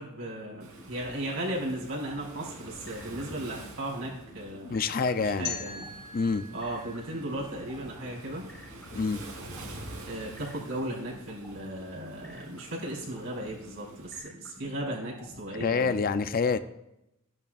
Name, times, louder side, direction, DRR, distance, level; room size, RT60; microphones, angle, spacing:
voice 1, 0.0-4.8 5.2-5.9 6.5-8.5 10.0-16.0, right 1 dB, 70° right, -4 dB, 4.1 m, -36 dB
sound 1, 0.5-15.4, left 1 dB, 10° left, 1.8 m, -51 dB
Waves surf, 0.6-14.2, right 2 dB, 90° right, 2.9 m, -47 dB
voice 2, 4.6-5.5 6.1-6.5 9.0-9.2 15.6-16.6, left 4 dB, 45° left, 12 dB, 0.5 m, -27 dB
sound 2, 5.4-8.4, left 7 dB, 75° left, 1.7 m, -42 dB
15.0 x 10.5 x 2.4 m, 0.86 s
head